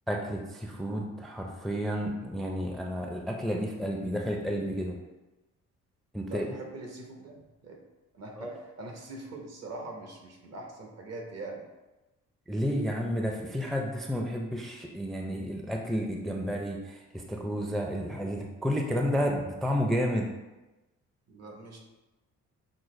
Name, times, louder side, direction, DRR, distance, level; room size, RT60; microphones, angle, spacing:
voice 1, 0.1-4.9 6.1-6.5 8.4-8.5 12.5-17.0 17.3-20.3, equal, ahead, 1 dB, 0.4 m, -31 dB
voice 2, 6.3-7.8 8.1-11.7 21.3-21.8, right 2 dB, 55° right, 1 dB, 1.0 m, -42 dB
6.2 x 2.1 x 3.1 m, 1.1 s
cardioid pair, 90°, 30 cm